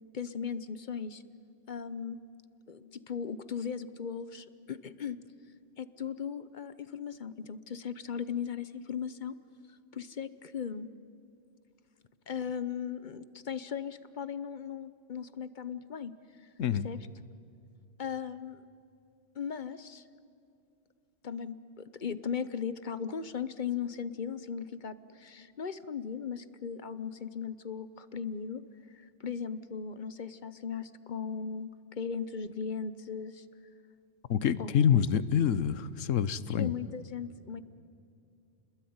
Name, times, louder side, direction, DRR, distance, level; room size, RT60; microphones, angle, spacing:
voice 1, 0.1-1.2 1.7-2.2 2.7-5.2 5.8-9.3 9.9-10.9 12.3-16.1 16.8-17.0 18.0-18.6 19.4-20.0 21.2-28.6 29.2-33.4 34.6-35.1 36.6-37.6, left 7 dB, 45° left, 14 dB, 0.9 m, -37 dB
voice 2, 34.3-36.7, left 8 dB, 85° left, 16 dB, 1.2 m, -26 dB
29.5 x 21.0 x 9.5 m, 2.6 s
omnidirectional pair, 1.3 m